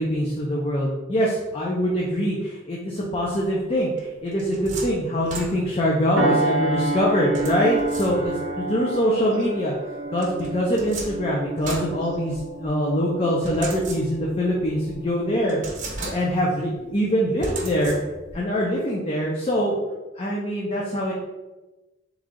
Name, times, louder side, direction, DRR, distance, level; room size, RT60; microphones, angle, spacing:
voice 1, 0.0-9.7 10.1-15.6 16.0-18.0 18.3-19.8 20.2-21.1, equal, 30° left, -4 dB, 0.6 m, -23 dB
sound 1, 4.0-6.0 7.4-8.6 10.2-12.7 13.4-14.4 14.9-15.0 15.5-16.6 17.4-18.4, right 3 dB, 45° right, 0.8 m, -36 dB
sound 2, 6.2-15.0 15.5-15.7, right 2 dB, 75° right, 0.6 m, -30 dB
3.7 x 3.2 x 3.7 m, 1.1 s
head